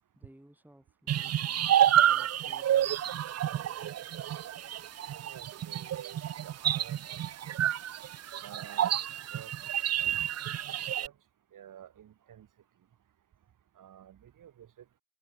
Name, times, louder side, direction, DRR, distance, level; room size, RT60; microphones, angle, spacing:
voice 1, 0.1-3.7, right 1 dB, 5° right, 3.8 m, -59 dB
sound 1, 1.1-11.1, right 11 dB, 55° right, 0.5 m, -29 dB
voice 2, 5.1-7.6 8.4-8.9 9.3-9.5 10.0-10.3 11.0-11.1 11.5-12.5 13.8-14.8, right 10 dB, 85° right, 3.3 m, -50 dB
cardioid pair, 60°, 31 cm